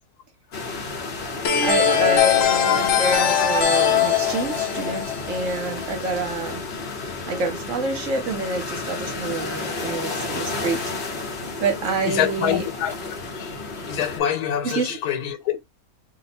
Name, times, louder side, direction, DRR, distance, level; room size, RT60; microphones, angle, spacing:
sound 1, 0.5-14.2, left 3 dB, 50° left, 1.0 m, -32 dB
sound 2, 1.4-6.1, left 8 dB, 65° left, 0.8 m, -21 dB
voice 1, 1.6-6.6 7.3-10.8 11.6-12.6 14.6-15.0, right 3 dB, 65° right, 1.0 m, -27 dB
voice 2, 12.0-12.9 13.3-15.6, left 10 dB, 90° left, 1.1 m, -26 dB
2.7 x 2.1 x 4.1 m
omnidirectional pair, 1.6 m